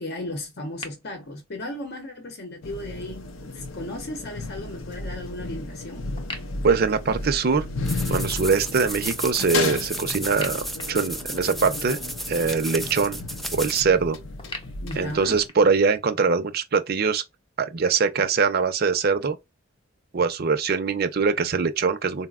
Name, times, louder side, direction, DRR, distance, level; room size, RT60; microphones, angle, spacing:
voice 1, 0.0-6.1 14.8-15.4, left 1 dB, 55° left, 0.8 m, -35 dB
sound 1, 0.8-0.9 6.2-7.6 10.3-11.7 14.4-15.8, left 2 dB, 25° left, 0.7 m, -40 dB
sound 2, 2.6-15.5, left 3 dB, 90° left, 0.6 m, -34 dB
voice 2, 6.6-7.7 8.1-12.0 12.3-13.2 13.5-14.2 15.0-17.2 17.6-19.4 20.1-22.3, right 5 dB, 50° right, 0.5 m, -22 dB
sound 3, 7.9-13.8, equal, ahead, 0.3 m, -33 dB
4.0 x 2.1 x 2.3 m
head